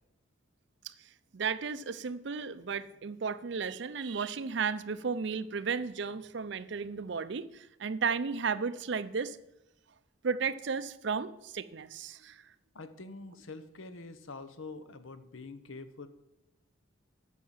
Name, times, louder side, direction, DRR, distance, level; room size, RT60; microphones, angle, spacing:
voice 1, 0.8-9.4 10.2-12.4, right 5 dB, 55° right, 15 dB, 0.5 m, -34 dB
voice 2, 12.7-16.1, left 3 dB, 75° left, 11 dB, 0.8 m, -45 dB
9.3 x 6.4 x 7.3 m, 0.88 s
head